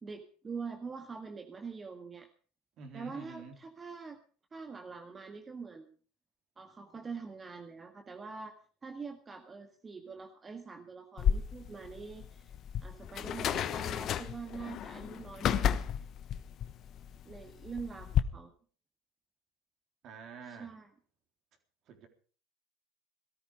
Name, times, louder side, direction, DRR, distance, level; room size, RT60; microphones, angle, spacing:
voice 1, 0.0-2.3 2.9-4.2 4.5-6.0 6.6-12.5 12.8-15.7 17.3-18.5 20.4-20.9, right 5 dB, 25° right, 1.8 m, -44 dB
voice 2, 2.8-3.6 20.0-20.8 21.9-22.1, right 5 dB, 50° right, 3.8 m, -48 dB
sound 1, 11.2-18.2, left 9 dB, 45° left, 1.1 m, -33 dB
17.5 x 13.5 x 5.3 m
hypercardioid pair, 85°, 0 cm